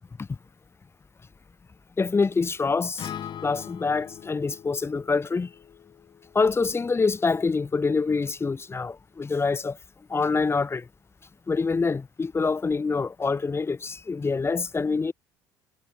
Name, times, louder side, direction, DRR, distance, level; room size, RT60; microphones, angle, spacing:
voice 1, 2.0-3.1 3.4-5.5 6.3-9.8 10.1-10.9 11.5-15.1, left 4 dB, 25° left, 2.6 m, -25 dB
Acoustic guitar, 3.0-7.2, left 9 dB, 50° left, 7.4 m, -42 dB
hypercardioid pair, 65°, 10 cm